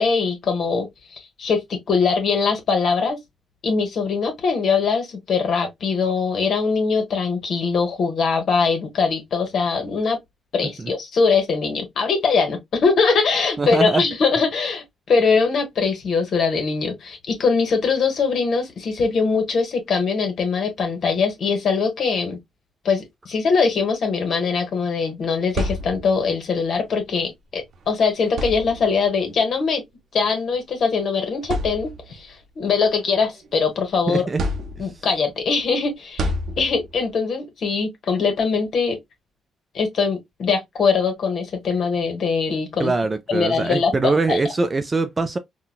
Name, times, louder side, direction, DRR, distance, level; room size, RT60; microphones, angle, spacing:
voice 1, 0.0-3.2 3.6-10.2 10.5-22.4 22.8-29.8 30.1-34.2 34.8-36.3 36.6-39.0 39.7-42.9 43.3-44.4, left 5 dB, 60° left, 1.1 m, -22 dB
voice 2, 13.6-14.0 34.1-34.4 42.8-45.4, right 3 dB, 25° right, 0.4 m, -22 dB
sound 1, 25.2-26.4 27.6-27.8 28.3-29.1 30.2-30.4 30.9-31.0 31.4-32.3 32.8-33.8 34.4-35.2 36.2-37.1, equal, 60° right, 0.6 m, -29 dB
3.9 x 2.2 x 2.3 m
cardioid pair, 90°, 0 cm